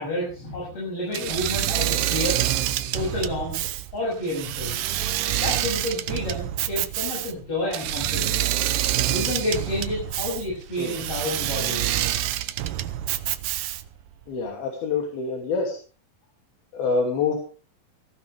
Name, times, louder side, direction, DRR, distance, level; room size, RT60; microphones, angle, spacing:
voice 1, 0.0-2.4 2.9-3.6 3.9-4.8 5.4-8.4 9.1-12.0, left 1 dB, 40° left, -4 dB, 8.3 m, -30 dB
Engine / Mechanisms, 1.1-14.0, right 13 dB, 75° right, 2.5 m, -27 dB
voice 2, 14.3-15.8 16.7-17.4, left 4 dB, 85° left, 1 dB, 4.6 m, -26 dB
19.5 x 15.5 x 3.5 m, 0.37 s
omnidirectional pair, 4.2 m